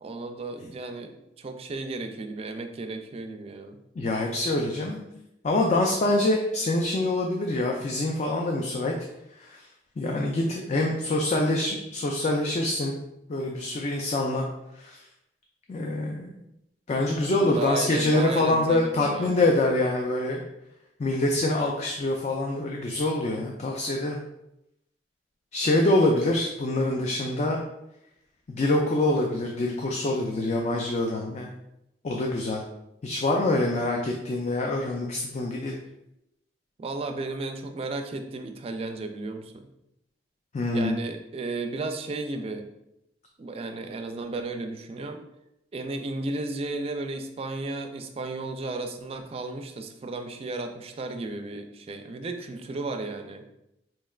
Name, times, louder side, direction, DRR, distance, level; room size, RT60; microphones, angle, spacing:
voice 1, 0.0-1.1 1.4-3.8 17.3-19.5 36.8-39.7 40.7-42.7 43.4-45.2 45.7-53.5, right 2 dB, 35° right, 6 dB, 0.3 m, -34 dB
voice 2, 4.0-5.0 5.4-8.9 9.4-9.7 10.0-13.0 13.3-14.5 14.7-15.0 15.7-16.3 16.9-20.4 21.0-24.2 25.5-27.6 28.5-31.5 32.0-32.6 33.0-35.8 40.5-41.0, left 2 dB, 40° left, 1 dB, 0.4 m, -25 dB
4.3 x 3.2 x 2.3 m, 0.85 s
head